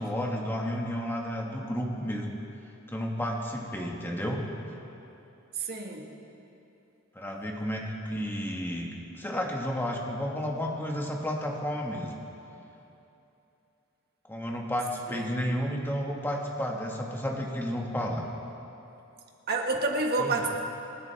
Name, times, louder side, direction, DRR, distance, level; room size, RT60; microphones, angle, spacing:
voice 1, 0.0-2.3 2.9-4.4 7.1-8.9 9.2-12.2 14.3-18.3 20.2-20.4, equal, 10° left, -1 dB, 1.6 m, -32 dB
voice 2, 5.5-6.1 15.1-15.3 19.5-20.5, right 3 dB, 50° right, 1 dB, 1.7 m, -29 dB
28.0 x 12.0 x 3.5 m, 2.9 s
head